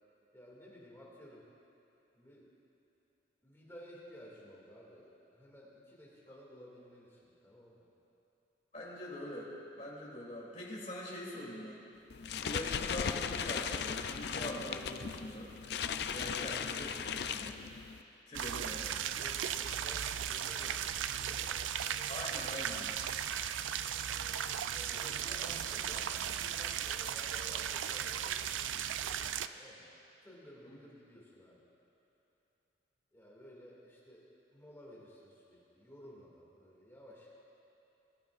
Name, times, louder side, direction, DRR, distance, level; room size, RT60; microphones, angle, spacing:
voice 1, 0.3-1.4 2.1-2.5 3.4-7.8 18.9-21.6 24.7-29.2 29.5-29.9 30.2-31.6 33.1-37.3, equal, 15° left, -6 dB, 2.2 m, -54 dB
voice 2, 8.7-11.8 12.4-15.5 16.1-17.6 18.3-19.0 22.1-22.9 30.7-30.8, left 1 dB, 40° left, -5 dB, 2.9 m, -43 dB
sound 1, 12.1-18.0, left 7 dB, 60° left, 0.4 m, -37 dB
sound 2, 18.3-29.5, right 9 dB, 85° right, 0.4 m, -36 dB
22.0 x 12.0 x 2.5 m, 2.8 s
head